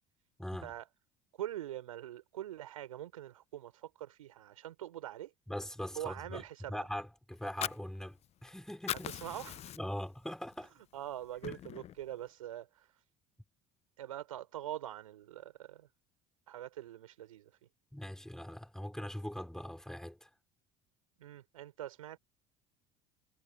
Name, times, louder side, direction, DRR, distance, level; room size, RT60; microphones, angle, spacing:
voice 1, 0.4-0.7 5.5-6.4 6.7-9.2 9.7-10.7 17.9-20.3, left 1 dB, 5° left, 4.8 m, -41 dB
voice 2, 1.4-5.3 6.0-6.9 9.0-9.7 10.9-13.0 14.0-15.9 16.5-17.5 21.2-22.2, right 12 dB, 75° right, 5.4 m, -44 dB
Fire, 7.3-8.5 8.7-10.1 10.5-10.7 11.1-12.0, left 12 dB, 35° left, 0.6 m, -40 dB
figure-of-eight pair, 65°, 18 cm